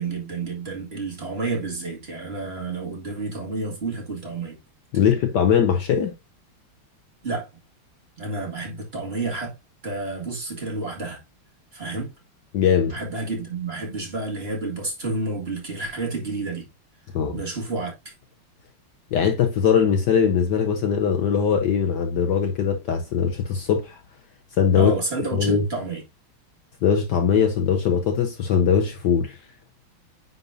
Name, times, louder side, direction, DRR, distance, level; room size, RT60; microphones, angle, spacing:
voice 1, 0.0-4.6 4.9-5.0 7.2-7.5 8.2-9.5 9.8-11.2 11.7-12.1 12.9-16.6 17.3-17.9 24.7-26.0, right 3 dB, 30° right, 2.0 m, -30 dB
voice 2, 4.9-6.1 12.5-12.9 17.1-17.3 19.1-24.0 24.6-24.9 25.3-25.6 26.8-29.4, left 7 dB, 65° left, 1.2 m, -21 dB
9.3 x 4.1 x 2.6 m
omnidirectional pair, 2.3 m